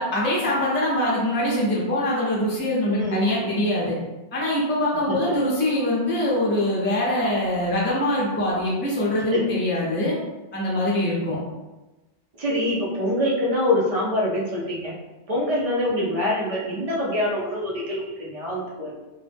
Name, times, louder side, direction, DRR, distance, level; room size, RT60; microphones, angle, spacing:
voice 1, 0.0-4.0 4.3-10.2 10.5-11.4, left 1 dB, 20° left, -5 dB, 0.3 m, -23 dB
voice 2, 2.9-3.5 5.1-5.4 9.3-9.5 10.9-11.0 12.3-14.9 15.3-18.9, left 1 dB, 50° right, -4 dB, 0.4 m, -25 dB
2.2 x 2.0 x 3.3 m, 1.1 s
omnidirectional pair, 1.2 m